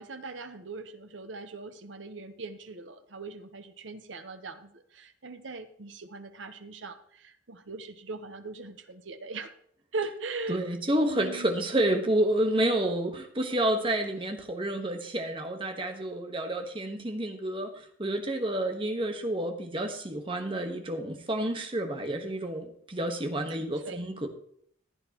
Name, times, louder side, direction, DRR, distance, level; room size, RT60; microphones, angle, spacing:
voice 1, 0.0-9.5 9.9-10.6 10.9-11.6 23.5-24.0, right 3 dB, 90° right, 8 dB, 1.0 m, -40 dB
voice 2, 10.5-17.7 18.0-24.3, right 1 dB, 30° right, 5 dB, 1.3 m, -29 dB
15.5 x 9.0 x 3.0 m, 0.65 s
head